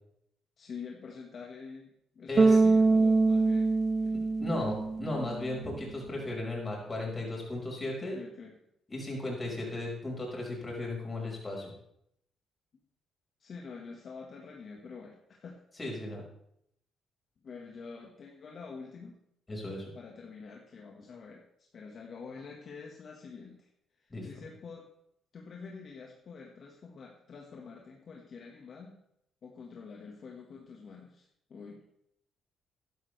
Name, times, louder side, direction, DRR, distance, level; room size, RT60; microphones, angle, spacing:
voice 1, 0.6-3.7 4.0-4.2 4.6-4.7 8.0-8.6 13.4-15.6 17.4-19.2 20.0-21.4 21.7-23.7 24.0-24.9 25.3-29.0 29.4-31.8, left 5 dB, 55° left, -1 dB, 1.6 m, -46 dB
Bass guitar, 2.4-5.5, right 3 dB, 35° right, 0.4 m, -24 dB
voice 2, 4.4-8.2 8.9-11.7 15.8-16.2 19.5-19.9 24.1-24.4, left 2 dB, 25° left, -2 dB, 5.3 m, -35 dB
12.5 x 11.5 x 3.4 m, 0.75 s
cardioid pair, 90°, 0 cm